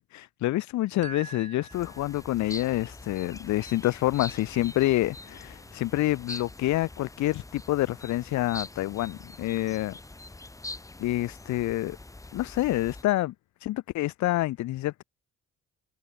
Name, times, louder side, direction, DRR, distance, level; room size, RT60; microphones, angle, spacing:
voice 1, 0.0-10.0 11.0-12.0 12.3-13.3 13.6-15.0, left 16 dB, 70° left, 0.6 m, -27 dB
sound 1, 1.0-2.6, right 4 dB, 25° right, 1.8 m, -45 dB
sound 2, 1.7-13.0, left 2 dB, 10° left, 0.9 m, -44 dB
cardioid pair, 90°, 30 cm